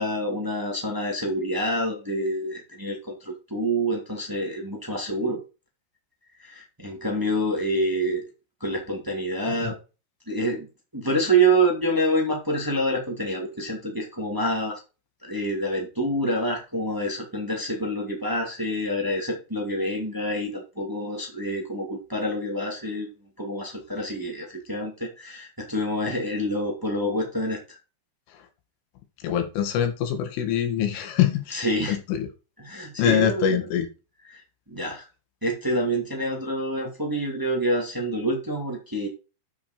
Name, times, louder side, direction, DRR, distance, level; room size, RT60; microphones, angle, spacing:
voice 1, 0.0-5.4 6.4-8.2 8.6-9.7 10.2-10.7 10.9-14.8 15.2-23.1 23.4-27.8 31.5-32.0 32.6-33.6 34.3-34.4 34.7-35.1 35.4-39.1, right 1 dB, 10° right, 0 dB, 1.0 m, -27 dB
voice 2, 29.2-32.3 33.0-33.9, left 9 dB, 80° left, 5 dB, 4.4 m, -24 dB
9.5 x 6.1 x 4.5 m, 0.31 s
omnidirectional pair, 5.6 m